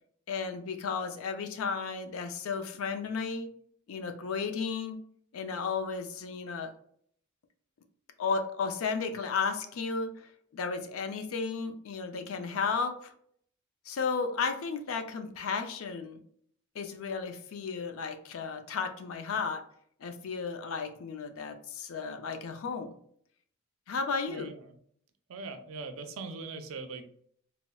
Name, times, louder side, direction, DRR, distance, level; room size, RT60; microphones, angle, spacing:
voice 1, 0.3-3.5 3.9-5.0 5.3-6.7 8.2-13.1 13.9-16.2 16.7-19.6 20.0-23.0 23.9-24.5, left 5 dB, 85° left, 7 dB, 0.4 m, -34 dB
voice 2, 24.3-24.8 25.3-27.1, right 4 dB, 85° right, 7 dB, 0.4 m, -41 dB
4.1 x 2.0 x 2.2 m, 0.65 s
head